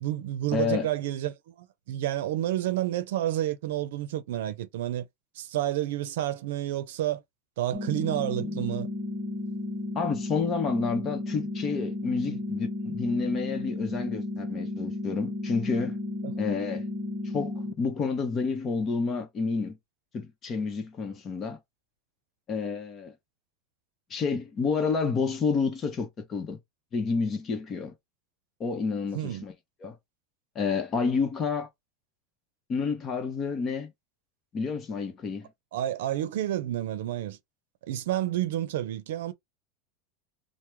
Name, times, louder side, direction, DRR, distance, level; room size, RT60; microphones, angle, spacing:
voice 1, 0.0-5.1 5.4-7.2 7.6-8.9 12.3-12.4 16.2-16.3 29.1-29.4 35.7-37.4 37.9-39.3, right 13 dB, 80° right, 0.6 m, -30 dB
voice 2, 0.5-0.9 8.4-8.6 9.9-16.0 16.4-16.9 17.3-19.8 20.1-21.6 22.5-23.1 24.1-26.6 26.9-27.9 28.6-29.5 29.8-30.0 30.5-31.7 32.7-33.9 34.5-35.5, left 5 dB, 30° left, 0.9 m, -29 dB
sound 1, 7.7-17.7, left 2 dB, 20° right, 0.7 m, -33 dB
3.0 x 2.1 x 3.4 m
supercardioid pair, 145°, 0 cm